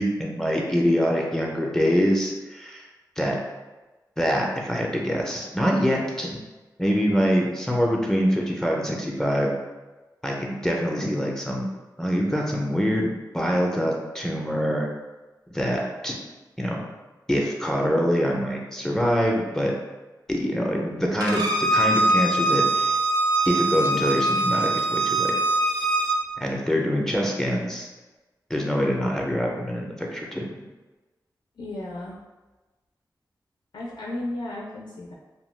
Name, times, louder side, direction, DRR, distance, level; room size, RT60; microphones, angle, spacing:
voice 1, 0.0-2.9 3.2-3.4 4.2-6.4 6.8-9.5 10.2-11.7 12.0-14.9 15.5-16.2 16.6-16.8 17.3-19.7 20.3-23.0 23.5-25.3 26.4-27.9 28.5-30.5, equal, 5° left, -1 dB, 0.4 m, -24 dB
Bowed string instrument, 21.2-26.2, right 1 dB, 65° right, 0.5 m, -22 dB
voice 2, 31.6-32.2 33.7-35.1, left 1 dB, 80° left, -3 dB, 0.4 m, -34 dB
2.7 x 2.1 x 3.1 m, 1.2 s
wide cardioid pair, 105°, 8 cm